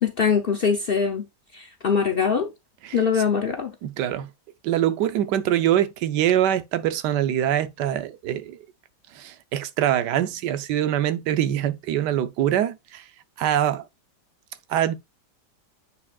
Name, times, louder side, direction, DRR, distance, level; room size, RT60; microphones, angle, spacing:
voice 1, 0.0-1.3 1.5-2.5 2.9-3.7, left 6 dB, 55° left, 0.6 m, -22 dB
voice 2, 2.8-3.2 3.8-4.3 4.6-8.6 9.1-13.1 13.4-13.9 14.7-14.9, right 11 dB, 85° right, 1.3 m, -24 dB
8.5 x 4.9 x 2.3 m
omnidirectional pair, 1.8 m